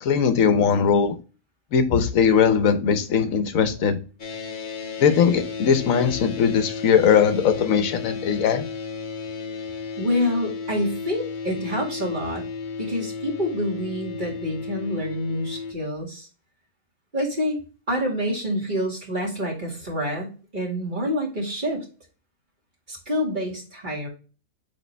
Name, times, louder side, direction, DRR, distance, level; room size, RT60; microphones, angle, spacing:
voice 1, 0.0-1.1 1.7-4.0 5.0-8.7, left 7 dB, 65° left, 9 dB, 1.2 m, -20 dB
sound 1, 4.2-15.7, left 5 dB, 40° left, 0.9 m, -33 dB
voice 2, 10.0-12.4 12.8-16.3 17.1-17.6 17.9-21.8 22.9-24.1, equal, 30° right, -1 dB, 2.2 m, -27 dB
8.2 x 3.8 x 3.3 m, 0.35 s
omnidirectional pair, 1.6 m